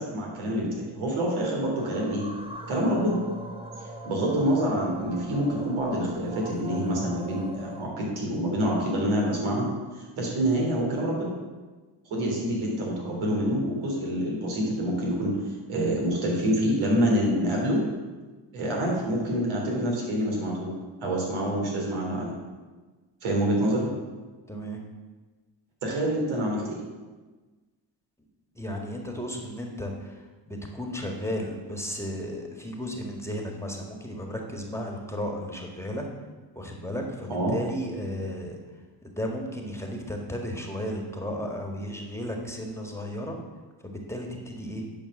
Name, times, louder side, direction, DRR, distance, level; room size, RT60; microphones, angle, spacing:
voice 1, 0.0-2.2 2.7-3.2 4.0-9.7 9.9-11.3 12.1-17.8 18.5-20.7 21.0-22.3 23.2-23.9 25.8-26.8 37.3-37.6, equal, 85° right, -2 dB, 3.4 m, -26 dB
sound 1, 1.8-7.9, right 1 dB, 10° right, 1.1 m, -41 dB
voice 2, 24.5-24.8 28.5-36.0 36.5-38.6 39.0-43.4 43.8-44.9, equal, 5° left, 1 dB, 1.7 m, -34 dB
10.0 x 5.3 x 6.5 m, 1.3 s
cardioid pair, 90°, 47 cm